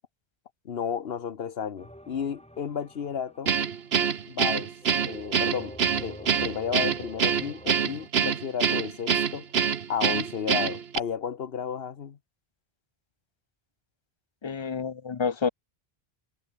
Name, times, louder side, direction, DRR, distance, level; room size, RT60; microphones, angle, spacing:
voice 1, 0.6-3.5 4.3-4.7 5.0-9.5 9.9-12.2, left 7 dB, 70° left, 1.2 m, -33 dB
sound 1, 1.8-4.2 4.8-8.1, equal, 5° left, 6.3 m, -46 dB
Guitar, 3.5-11.0, right 7 dB, 80° right, 1.3 m, -25 dB
voice 2, 14.4-15.5, left 5 dB, 40° left, 0.4 m, -29 dB
omnidirectional pair, 1.0 m